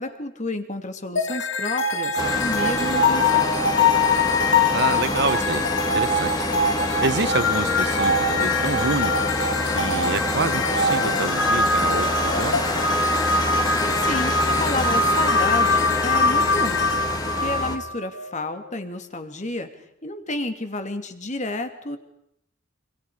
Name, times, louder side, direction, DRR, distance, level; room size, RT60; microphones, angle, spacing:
voice 1, 0.0-3.6 13.8-19.7 20.0-22.0, left 2 dB, 40° left, 7 dB, 2.8 m, -31 dB
sound 1, 1.2-18.3, left 3 dB, 70° left, 2.5 m, -23 dB
sound 2, 2.2-17.8, left 1 dB, 20° left, 2.9 m, -27 dB
voice 2, 4.7-5.7 5.9-6.5 7.0-9.3 9.6-12.6, right 4 dB, 60° right, 17 dB, 1.0 m, -28 dB
29.5 x 27.0 x 5.1 m, 0.78 s
head